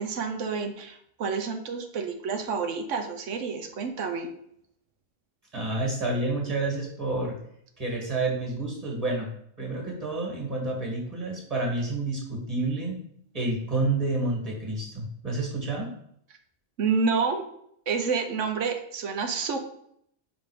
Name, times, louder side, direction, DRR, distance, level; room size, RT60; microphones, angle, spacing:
voice 1, 0.0-4.3 16.8-17.4 17.9-19.6, right 5 dB, 75° right, 6 dB, 1.1 m, -29 dB
voice 2, 5.5-7.4 7.8-9.3 9.6-13.0 13.3-15.9, right 2 dB, 30° right, -1 dB, 1.9 m, -29 dB
5.3 x 3.9 x 4.9 m, 0.69 s
omnidirectional pair, 1.3 m